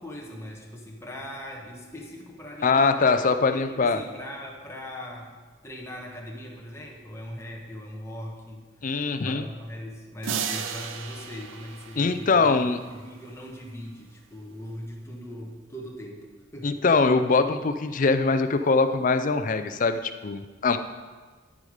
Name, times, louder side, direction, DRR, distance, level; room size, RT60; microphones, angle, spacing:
voice 1, 0.0-5.3 5.6-8.7 9.1-12.5 12.9-16.3 16.5-16.8, left 1 dB, 15° left, -1 dB, 1.2 m, -40 dB
voice 2, 2.6-4.0 8.8-9.5 12.0-12.8 16.6-20.8, left 4 dB, 40° left, 10 dB, 0.4 m, -22 dB
sound 1, 10.2-13.0, right 7 dB, 75° right, 0.6 m, -35 dB
13.5 x 5.0 x 5.0 m, 1.4 s
head